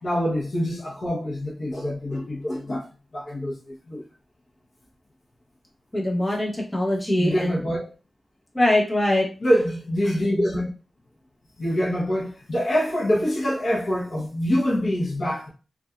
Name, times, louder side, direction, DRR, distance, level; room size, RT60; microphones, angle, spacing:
voice 1, 0.0-2.9 3.1-4.0 7.2-7.9 9.4-10.7 11.6-15.5, equal, 65° left, 0.7 m, -25 dB
voice 2, 5.9-7.6 8.5-9.3, left 1 dB, 15° left, 1.0 m, -22 dB
2.7 x 2.3 x 2.2 m
wide cardioid pair, 70°, 0 cm